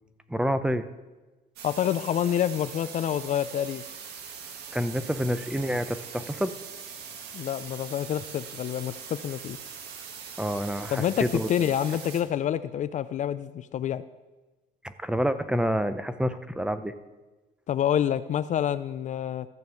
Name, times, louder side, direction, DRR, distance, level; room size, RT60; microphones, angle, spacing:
voice 1, 0.3-0.9 4.7-6.5 10.4-11.5 14.8-16.9, equal, 5° right, 11 dB, 0.6 m, -28 dB
voice 2, 1.6-3.8 7.3-9.6 10.9-14.0 17.7-19.5, left 10 dB, 45° left, 13 dB, 0.4 m, -27 dB
sound 1, 1.6-12.2, right 7 dB, 75° right, 1.6 m, -42 dB
14.0 x 5.4 x 7.9 m, 1.2 s
cardioid pair, 120°, 17 cm